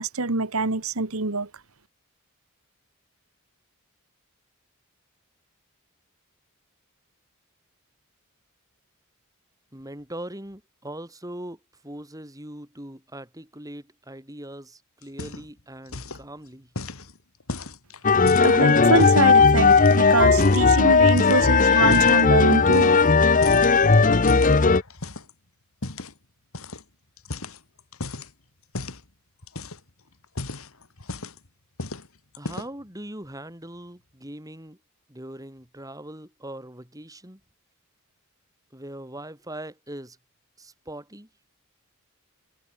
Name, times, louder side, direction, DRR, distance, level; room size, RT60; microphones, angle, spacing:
voice 1, 0.0-1.5 18.4-22.9, right 3 dB, 70° right, 1.7 m, -24 dB
voice 2, 9.7-16.7 32.4-34.8 35.1-37.4 38.7-40.2 40.6-41.3, right 1 dB, 15° right, 5.3 m, -40 dB
sound 1, 15.0-15.6 15.9-16.3 16.8-19.3 19.7-20.7 21.1-22.2 22.7-23.2 23.4-25.3 25.8-26.1 26.5-26.8 27.2-28.3 28.7-29.0 29.4-29.9 30.2-31.5 31.8-32.1 32.3-32.8, left 2 dB, 65° left, 2.4 m, -35 dB
sound 2, 18.0-24.8, left 4 dB, 35° left, 0.8 m, -17 dB
head